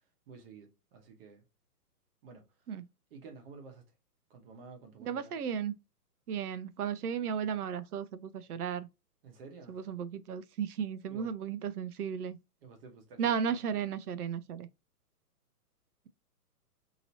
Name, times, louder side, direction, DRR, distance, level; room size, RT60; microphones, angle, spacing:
voice 1, 0.3-1.4 2.2-2.7 3.1-3.8 4.3-5.3 9.2-9.9 11.1-11.3 12.6-13.6, right 4 dB, 35° right, 1.1 m, -51 dB
voice 2, 5.0-5.8 6.3-8.9 9.7-12.4 13.2-14.7, right 7 dB, 70° right, 0.6 m, -34 dB
2.9 x 2.8 x 2.7 m
hypercardioid pair, 150°, 47 cm